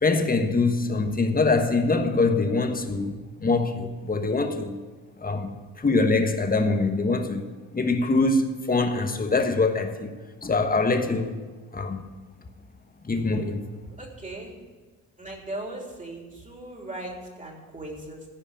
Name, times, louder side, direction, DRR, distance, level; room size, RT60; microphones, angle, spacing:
voice 1, 0.0-3.1 3.4-4.8 5.2-7.5 7.7-10.1 10.4-11.4 11.7-12.0 13.0-13.6, left 3 dB, 25° left, 1.4 m, -24 dB
voice 2, 14.0-14.6 15.2-18.3, right 1 dB, 20° right, 3.4 m, -38 dB
14.5 x 5.2 x 8.8 m
supercardioid pair, 60°, 37 cm